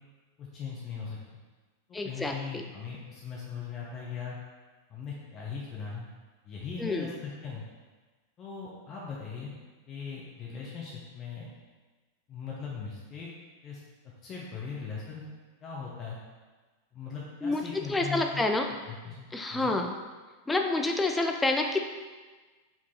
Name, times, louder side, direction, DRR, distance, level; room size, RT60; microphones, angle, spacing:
voice 1, 0.4-1.4 2.0-4.4 4.9-6.0 6.4-7.6 8.4-9.5 9.9-11.5 12.3-13.3 13.6-13.8 14.2-15.2 15.6-16.2 16.9-18.4 18.9-19.7, left 6 dB, 30° left, -5 dB, 0.8 m, -39 dB
voice 2, 1.9-2.6 6.8-7.1 17.4-18.7 19.3-19.9 20.5-21.8, left 2 dB, 10° left, 3 dB, 0.4 m, -28 dB
4.8 x 2.8 x 3.7 m, 1.3 s
figure-of-eight pair, 90°, 0 cm